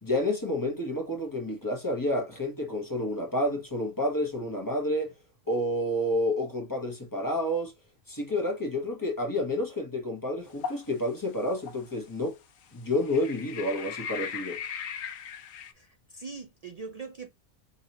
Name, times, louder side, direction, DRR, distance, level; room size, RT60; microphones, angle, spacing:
voice 1, 0.0-5.1 5.5-7.7 8.1-12.3 12.7-14.6, left 1 dB, 15° left, 1.1 m, -29 dB
sound 1, 10.6-10.9 11.6-11.7 13.0-15.7, left 7 dB, 80° left, 1.1 m, -37 dB
voice 2, 15.7-17.3, right 4 dB, 65° right, 0.3 m, -42 dB
5.2 x 2.9 x 2.8 m
omnidirectional pair, 1.4 m